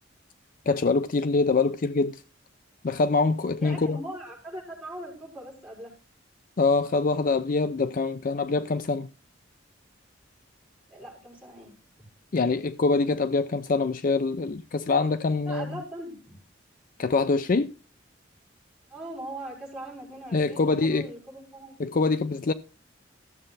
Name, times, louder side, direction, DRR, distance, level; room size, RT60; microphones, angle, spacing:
voice 1, 0.7-2.1 2.8-4.0 6.6-9.1 12.3-15.7 17.0-17.7 20.3-21.1 21.8-22.5, left 3 dB, 45° left, 0.4 m, -24 dB
voice 2, 3.6-5.9 10.9-11.7 15.4-16.4 18.9-21.8, right 1 dB, 5° right, 5.8 m, -40 dB
14.5 x 7.6 x 4.0 m
head